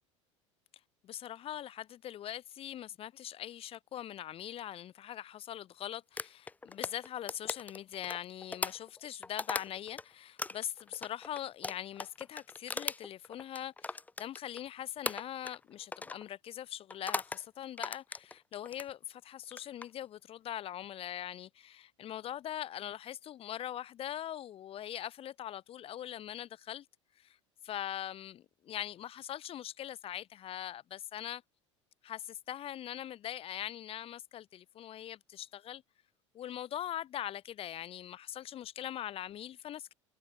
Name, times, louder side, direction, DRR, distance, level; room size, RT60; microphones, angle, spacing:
voice 1, 1.0-26.8 27.2-27.4 27.6-31.4 32.0-35.8 36.3-39.9, left 11 dB, 35° left, 1.3 m, -42 dB
sound 1, 6.2-10.0 10.4-14.7 15.0-15.6 15.9-16.2 16.9-17.4 17.8-18.9 19.4-19.9, left 3 dB, 10° left, 0.6 m, -39 dB
figure-of-eight pair, 70°, 16 cm